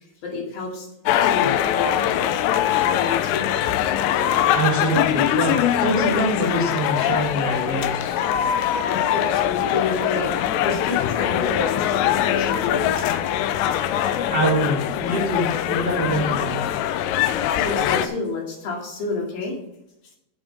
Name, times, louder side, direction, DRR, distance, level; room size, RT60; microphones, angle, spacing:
voice 1, 0.2-0.9 1.2-2.3 2.6-3.5 8.9-10.3 10.6-13.2 17.5-19.6, left 4 dB, 55° left, -1 dB, 3.9 m, -29 dB
sound 1, 1.1-18.1, left 11 dB, 80° left, 2.7 m, -22 dB
voice 2, 4.5-8.2 14.3-16.6, right 1 dB, 90° right, -2 dB, 0.9 m, -24 dB
9.0 x 7.1 x 5.1 m, 0.84 s
omnidirectional pair, 5.4 m